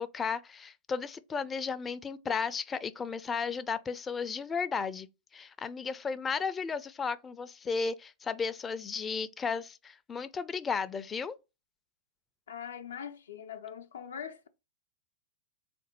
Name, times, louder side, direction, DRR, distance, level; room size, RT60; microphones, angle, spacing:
voice 1, 0.0-5.1 5.3-11.4, left 5 dB, 20° left, 0.4 m, -34 dB
voice 2, 12.5-14.5, left 8 dB, 80° left, 0.5 m, -42 dB
3.6 x 2.6 x 4.0 m
hypercardioid pair, 110°, 0 cm